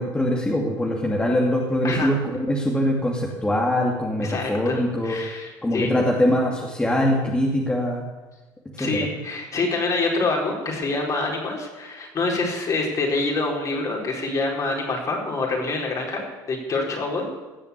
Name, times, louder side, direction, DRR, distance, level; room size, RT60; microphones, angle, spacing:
voice 1, 0.0-5.2 5.6-8.0 8.7-8.9, left 1 dB, 10° left, -2 dB, 2.6 m, -23 dB
voice 2, 4.2-5.9 8.8-17.3, left 3 dB, 40° left, 0 dB, 4.6 m, -26 dB
17.0 x 7.0 x 8.4 m, 1.2 s
supercardioid pair, 90°, 8 cm